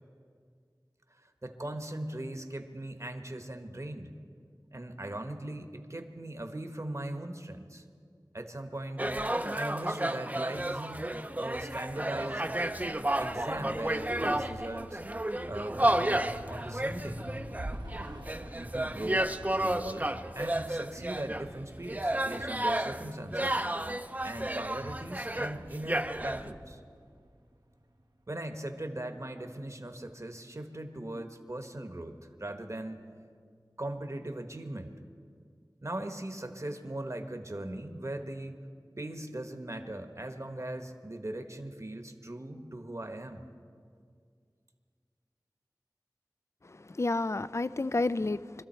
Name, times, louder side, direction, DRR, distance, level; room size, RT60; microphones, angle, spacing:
voice 1, 1.2-4.1 4.7-7.8 8.3-9.1 9.5-12.5 13.2-15.0 15.4-17.3 18.6-19.3 19.6-23.6 24.2-26.8 28.3-33.0 33.8-34.9 35.8-38.6 39.0-43.4, right 1 dB, 40° right, 6 dB, 1.2 m, -39 dB
sound 1, 9.0-26.5, right 1 dB, 20° right, 0.6 m, -32 dB
sound 2, 12.3-24.1, equal, 85° left, 3.5 m, -55 dB
sound 3, 15.5-28.0, right 1 dB, 80° right, 1.2 m, -47 dB
voice 2, 46.6-48.6, left 2 dB, 40° left, 16 dB, 0.4 m, -31 dB
24.5 x 13.5 x 4.4 m, 2.1 s
wide cardioid pair, 45°, 7 cm